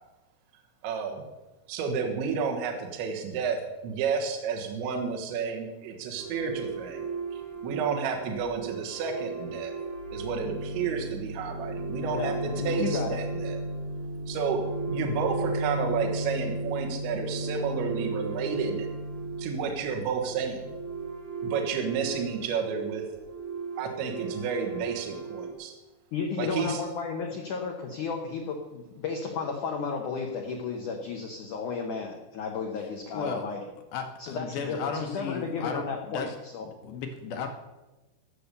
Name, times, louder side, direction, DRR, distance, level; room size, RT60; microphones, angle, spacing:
voice 1, 0.8-1.2 1.7-3.6 3.8-7.1 7.3-9.7 10.1-13.6 14.3-18.9 19.4-20.7 21.4-23.0 23.8-25.7 26.4-26.8, right 6 dB, 75° right, 2 dB, 3.6 m, -31 dB
sound 1, 6.2-25.5, right 2 dB, 55° right, 2.3 m, -35 dB
voice 2, 11.9-13.2 26.1-33.6 34.2-36.7, left 5 dB, 85° left, 2 dB, 1.7 m, -33 dB
voice 3, 33.1-33.4 33.9-36.4 36.6-37.5, left 5 dB, 70° left, 4 dB, 2.4 m, -35 dB
16.5 x 6.9 x 6.7 m, 1.1 s
omnidirectional pair, 5.4 m